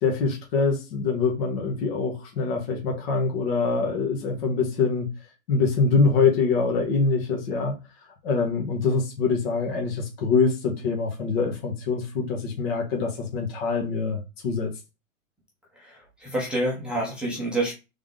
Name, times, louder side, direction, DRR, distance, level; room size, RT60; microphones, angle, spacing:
voice 1, 0.0-5.1 5.5-7.7 8.2-14.7, left 4 dB, 45° left, 1.5 m, -24 dB
voice 2, 16.2-17.7, right 1 dB, ahead, 0.7 m, -27 dB
3.6 x 3.6 x 3.7 m
hypercardioid pair, 145°, 41 cm